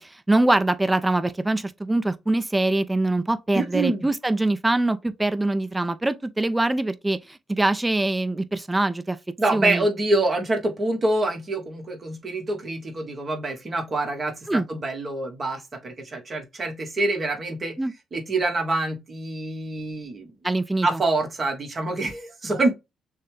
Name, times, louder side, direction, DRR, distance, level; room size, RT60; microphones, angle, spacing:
voice 1, 0.0-9.2 9.5-9.9 14.5-14.7 17.8-17.9 20.4-21.0, right 2 dB, 15° right, 0.6 m, -23 dB
voice 2, 3.5-4.1 9.4-17.8 18.1-20.3 20.8-22.7, right 2 dB, 40° right, 1.3 m, -26 dB
6.4 x 2.2 x 3.3 m
cardioid pair, 90°, 0 cm